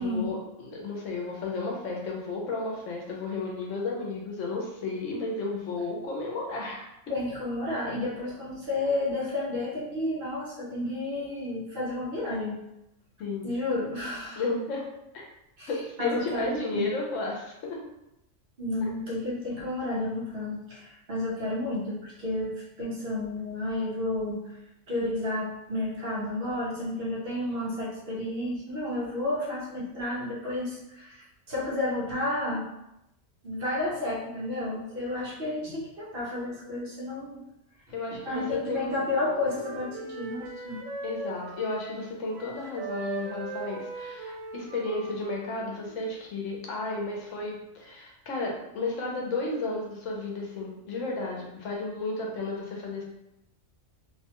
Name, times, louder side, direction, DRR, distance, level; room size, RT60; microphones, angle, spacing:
voice 1, 0.0-6.9 13.2-13.5 14.3-14.8 15.7-17.8 18.8-18.9 37.9-38.9 41.0-53.0, left 3 dB, 75° left, -1 dB, 1.0 m, -33 dB
voice 2, 7.1-12.6 13.4-14.4 15.6-15.7 16.0-16.9 18.6-24.5 24.9-32.7 33.4-37.4 38.1-40.8, left 2 dB, 55° right, -6 dB, 0.9 m, -31 dB
Wind instrument woodwind instrument, 38.5-42.1 42.3-46.2, right 3 dB, 85° right, 1.1 m, -40 dB
2.8 x 2.2 x 2.9 m, 0.85 s
omnidirectional pair, 1.3 m